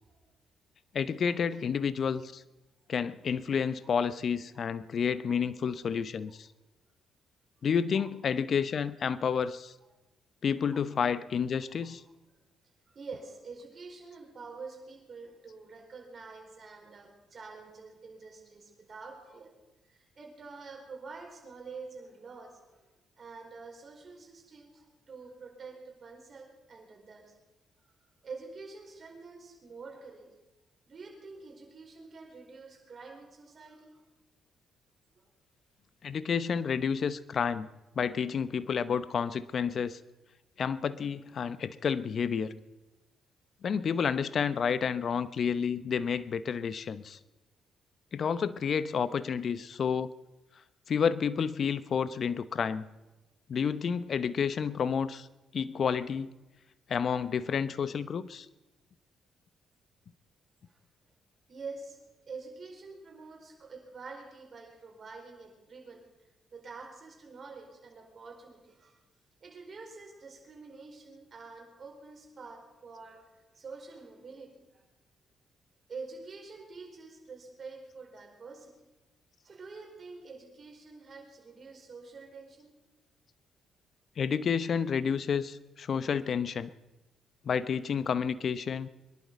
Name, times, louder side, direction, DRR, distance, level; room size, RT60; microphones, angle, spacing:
voice 1, 0.9-2.4 2.9-6.5 7.6-9.7 10.4-12.0 36.0-37.7 37.9-40.0 40.6-42.6 43.6-47.2 48.1-50.1 50.9-52.9 53.5-55.3 55.5-56.3 56.9-58.5 84.2-86.7 87.4-88.9, left 6 dB, 55° left, 16 dB, 0.8 m, -30 dB
voice 2, 5.3-5.7 7.9-8.1 10.7-10.8 12.9-19.5 19.9-27.3 28.2-30.3 30.9-34.0 35.1-35.3 60.7-60.8 61.5-66.1 66.5-69.0 69.4-74.8 75.9-78.8 79.4-82.7, right 4 dB, 50° right, 2 dB, 4.6 m, -47 dB
23.0 x 11.0 x 5.2 m, 1.0 s
hypercardioid pair, 50°, 0 cm